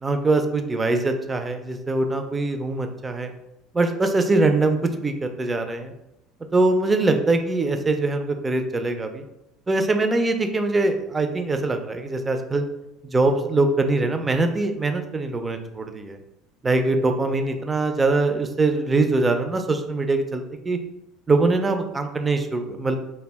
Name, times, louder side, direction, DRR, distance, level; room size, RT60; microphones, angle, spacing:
voice 1, 0.0-3.3 3.7-5.9 6.5-9.2 9.7-12.6 13.1-16.2 16.6-20.8 21.3-23.0, right 2 dB, 20° right, 6 dB, 0.3 m, -22 dB
2.3 x 2.1 x 3.3 m, 0.91 s
supercardioid pair, 100°, 0 cm